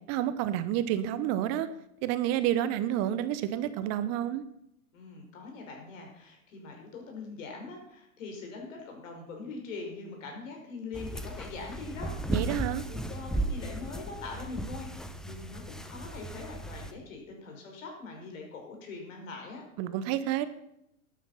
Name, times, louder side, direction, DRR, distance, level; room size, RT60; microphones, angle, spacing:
voice 1, 0.1-1.7 2.0-4.4 12.3-12.8 19.8-20.5, right 12 dB, 35° right, 13 dB, 0.9 m, -29 dB
voice 2, 4.9-12.5 12.9-19.6, left 3 dB, 60° left, 2 dB, 5.4 m, -42 dB
sound 1, 10.9-16.9, right 1 dB, ahead, 0.8 m, -36 dB
11.5 x 9.4 x 5.7 m, 0.80 s
hypercardioid pair, 105°, 43 cm